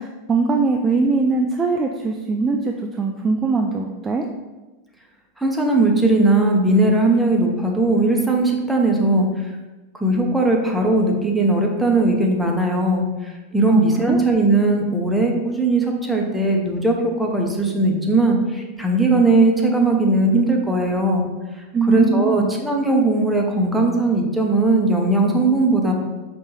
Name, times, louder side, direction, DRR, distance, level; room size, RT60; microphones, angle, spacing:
voice 1, 0.0-4.3 13.7-14.2 21.7-22.5, right 3 dB, 20° right, 2 dB, 0.3 m, -21 dB
voice 2, 5.4-9.5 9.9-21.2 21.9-25.9, right 2 dB, 5° right, 0 dB, 0.8 m, -18 dB
5.3 x 2.5 x 3.3 m, 1.1 s
figure-of-eight pair, 90°, 0 cm